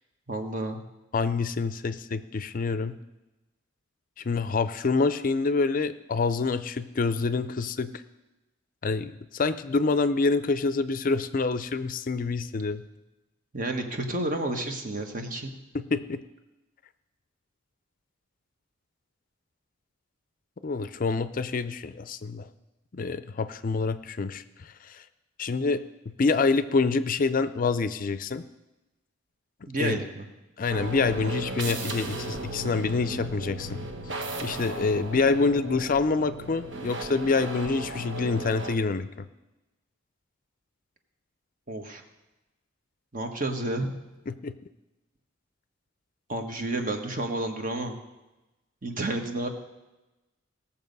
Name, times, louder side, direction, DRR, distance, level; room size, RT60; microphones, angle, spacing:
voice 1, 0.3-0.8 13.5-15.5 29.7-30.3 31.2-31.3 41.7-42.0 43.1-43.9 46.3-48.0 48.8-49.5, right 2 dB, 45° right, 5 dB, 1.3 m, -31 dB
voice 2, 1.1-2.9 4.2-7.9 8.8-12.8 15.7-16.2 20.6-22.5 22.9-25.0 25.4-25.8 26.2-28.4 29.8-30.0 30.6-33.8 34.4-39.3 44.3-44.5, left 4 dB, 45° left, 13 dB, 0.5 m, -27 dB
sound 1, 30.7-38.8, right 2 dB, 65° right, 1.2 m, -36 dB
18.5 x 7.1 x 5.4 m, 1.0 s
head